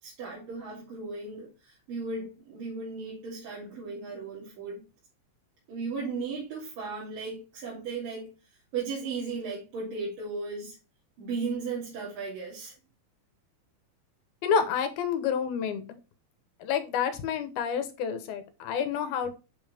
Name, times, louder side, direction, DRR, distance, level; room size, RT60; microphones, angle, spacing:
voice 1, 0.0-4.8 5.7-10.8 11.2-12.7, right 4 dB, 60° right, 4.2 m, -36 dB
voice 2, 14.4-16.0 16.6-19.3, left 7 dB, 75° left, 2.8 m, -29 dB
8.1 x 5.4 x 3.5 m
omnidirectional pair, 4.5 m